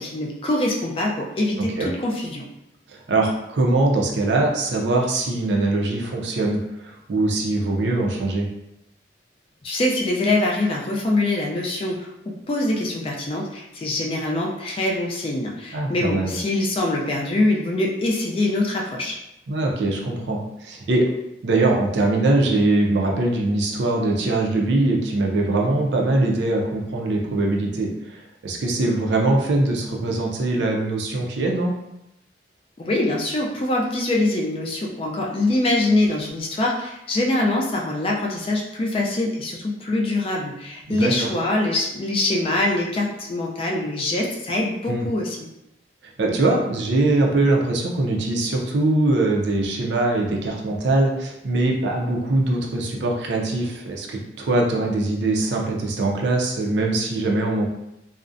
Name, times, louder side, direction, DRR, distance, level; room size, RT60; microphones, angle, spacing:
voice 1, 0.0-2.5 9.6-19.2 32.8-45.4, left 2 dB, 30° left, -1 dB, 0.3 m, -24 dB
voice 2, 1.6-1.9 2.9-8.5 15.7-16.3 19.5-21.1 21.4-31.7 40.9-41.3 44.9-45.1 46.2-57.7, right 2 dB, 70° right, 0 dB, 0.4 m, -22 dB
2.4 x 2.0 x 2.5 m, 0.86 s
head